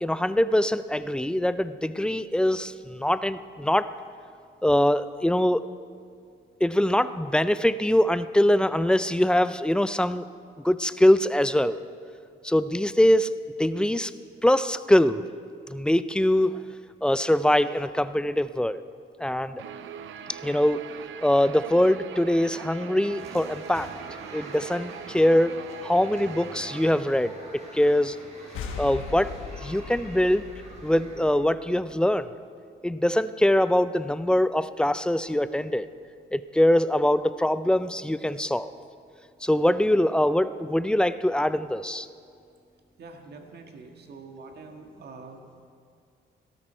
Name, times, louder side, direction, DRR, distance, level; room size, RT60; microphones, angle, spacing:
voice 1, 0.0-3.9 4.6-5.6 6.6-10.3 10.6-11.8 12.4-13.3 13.6-14.1 14.4-15.2 15.7-16.6 17.0-18.8 19.2-19.6 20.3-20.8 21.2-23.9 24.3-25.6 25.8-27.3 27.7-28.2 28.8-29.3 29.6-30.5 30.8-32.3 32.8-35.9 36.3-38.7 39.4-42.1, left 1 dB, 5° left, 14 dB, 0.4 m, -23 dB
Guitar, 19.6-27.0, right 8 dB, 75° right, 0.6 m, -41 dB
sound 1, 23.1-31.3, right 1 dB, 35° right, 3.9 m, -46 dB
sound 2, 28.5-32.0, left 6 dB, 85° left, 1.2 m, -39 dB
voice 2, 43.0-45.7, right 3 dB, 55° right, 4 dB, 1.6 m, -45 dB
17.5 x 13.0 x 4.4 m, 2.3 s
cardioid pair, 90°, 20 cm